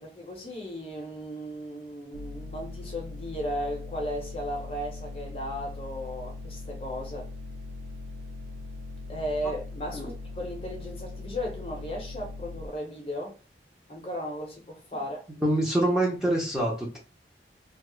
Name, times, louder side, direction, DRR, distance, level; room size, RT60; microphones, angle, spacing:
voice 1, 0.0-7.3 9.1-13.4 13.9-15.3, equal, 30° left, 0.8 m, -35 dB
sound 1, 2.1-12.7, left 3 dB, 80° right, 0.4 m, -40 dB
voice 2, 15.4-17.0, right 1 dB, 5° right, 0.7 m, -25 dB
3.0 x 2.3 x 3.0 m
head